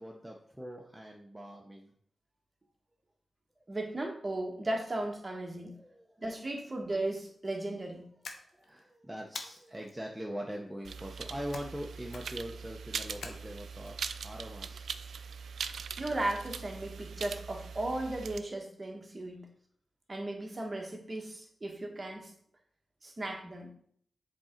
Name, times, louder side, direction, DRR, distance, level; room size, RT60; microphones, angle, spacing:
voice 1, 0.0-1.9 3.6-3.7 5.8-6.1 8.3-15.0, equal, 5° right, 0 dB, 0.7 m, -42 dB
voice 2, 3.7-5.8 6.2-8.1 16.0-19.5 20.1-22.3 23.0-23.7, right 1 dB, 25° right, 2 dB, 1.2 m, -36 dB
sound 1, 8.2-8.8 9.3-9.9 11.5-11.8 12.1-12.5 13.2-13.9, left 4 dB, 85° left, 0.8 m, -45 dB
sound 2, 10.8-18.4, right 6 dB, 85° right, 0.3 m, -41 dB
7.4 x 3.7 x 4.4 m, 0.63 s
wide cardioid pair, 110°, 0 cm